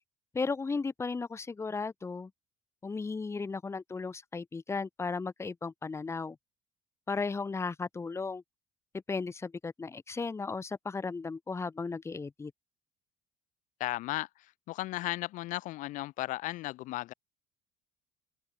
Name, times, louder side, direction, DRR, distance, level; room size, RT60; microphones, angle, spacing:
voice 1, 0.3-2.3 2.8-6.4 7.1-8.4 9.1-12.5, left 4 dB, 20° left, 1.4 m, -35 dB
voice 2, 13.8-14.3 14.7-17.1, left 17 dB, 70° left, 1.6 m, -35 dB
open air
supercardioid pair, 100°, 14 cm